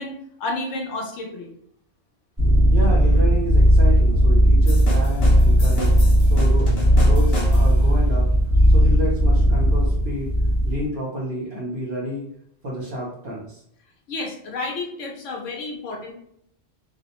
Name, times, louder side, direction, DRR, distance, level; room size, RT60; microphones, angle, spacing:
voice 1, 0.0-1.5 14.1-16.1, left 2 dB, 85° left, 0 dB, 0.9 m, -31 dB
sound 1, 2.4-10.9, equal, 5° right, 0.8 m, -16 dB
voice 2, 2.7-5.9 6.3-8.3 8.5-10.3 10.6-12.2 12.6-13.6, equal, 50° right, -4 dB, 0.8 m, -30 dB
sound 2, 4.7-7.9, left 1 dB, 60° left, 0.9 m, -33 dB
2.4 x 2.0 x 2.9 m, 0.70 s
omnidirectional pair, 1.2 m